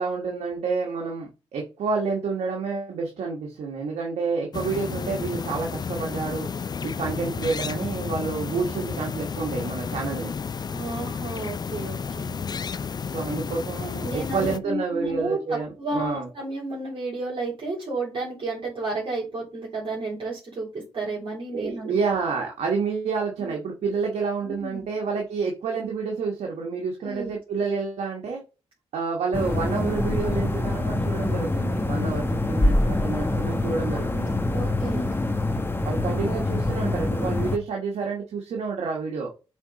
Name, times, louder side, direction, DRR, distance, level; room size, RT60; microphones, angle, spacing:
voice 1, 0.0-6.5 6.8-10.3 13.1-16.3 21.5-28.4 28.9-34.3 35.8-39.3, right 4 dB, 80° right, 0 dB, 1.4 m, -29 dB
sound 1, 4.5-14.6, left 6 dB, 40° left, 0.4 m, -32 dB
voice 2, 10.7-12.4 14.0-21.9 23.4-23.5 24.4-24.8 27.0-27.4 34.5-35.1, right 2 dB, 55° right, -5 dB, 3.6 m, -32 dB
sound 2, 29.3-37.6, left 2 dB, 20° left, 1.0 m, -25 dB
7.1 x 3.8 x 4.1 m, 0.31 s
cardioid pair, 70°, 11 cm